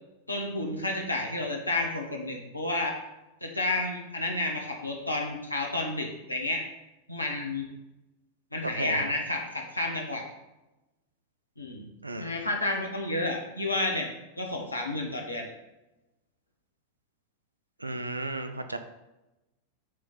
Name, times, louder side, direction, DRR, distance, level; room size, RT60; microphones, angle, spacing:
voice 1, 0.3-3.0 3.4-6.6 7.1-7.7 8.5-10.2 11.6-11.9 12.1-14.1 14.4-15.5, left 2 dB, 85° left, 0 dB, 1.2 m, -31 dB
voice 2, 8.8-9.1 12.0-12.3 17.8-18.8, right 2 dB, 80° right, 9 dB, 0.6 m, -34 dB
7.7 x 3.4 x 5.7 m, 0.99 s
figure-of-eight pair, 90°, 0 cm